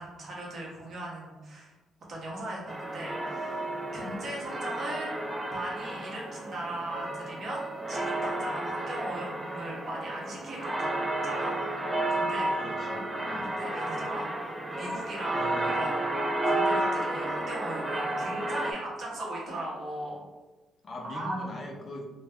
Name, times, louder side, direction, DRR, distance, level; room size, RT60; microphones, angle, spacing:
voice 1, 0.0-1.7 2.1-5.1 5.5-10.9 11.2-11.6 12.1-12.6 13.6-16.0 16.4-20.2 21.0-21.4, right 1 dB, 60° right, -4 dB, 0.8 m, -38 dB
sound 1, 2.7-18.7, right 1 dB, 10° right, 0.4 m, -32 dB
voice 2, 12.6-13.5 15.3-15.8 20.8-22.1, left 1 dB, 45° left, 1 dB, 0.6 m, -41 dB
2.3 x 2.2 x 3.4 m, 1.2 s
cardioid pair, 90°, 0 cm